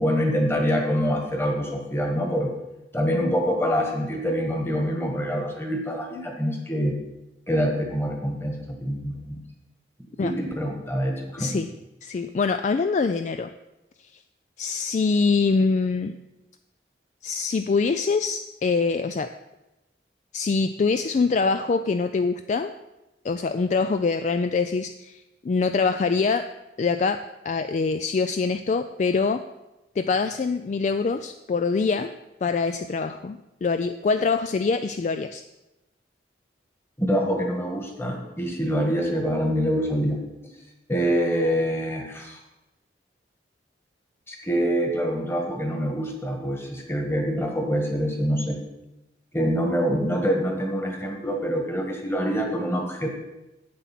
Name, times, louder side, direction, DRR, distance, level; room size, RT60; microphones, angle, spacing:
voice 1, 0.0-2.5 2.9-6.9 7.5-9.4 10.2-11.5 37.0-40.2 40.9-42.4 44.3-48.6 49.3-53.1, equal, 15° left, 2 dB, 1.5 m, -25 dB
voice 2, 11.4-11.7 12.0-13.5 14.6-16.2 17.2-19.3 20.3-22.7 23.2-26.5 26.8-29.4 30.0-32.1 32.4-35.4, left 4 dB, 40° left, 9 dB, 0.3 m, -24 dB
8.3 x 7.6 x 5.9 m, 0.98 s
head